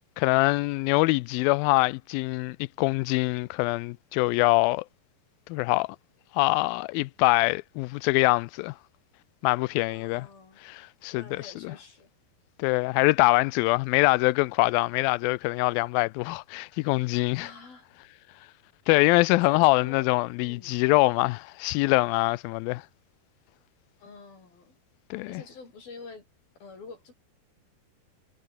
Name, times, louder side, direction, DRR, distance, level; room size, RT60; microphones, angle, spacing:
voice 1, 0.2-4.9 5.5-6.0 6.3-8.8 9.4-10.3 10.6-11.7 12.6-17.5 18.9-22.8 25.1-25.4, left 23 dB, 80° left, 2.2 m, -24 dB
voice 2, 9.9-10.6 11.1-12.1 17.4-17.9 19.3-20.1 20.4-20.8 24.0-24.8 25.3-26.3 26.6-27.1, left 4 dB, 65° left, 8.9 m, -47 dB
omnidirectional pair, 4.5 m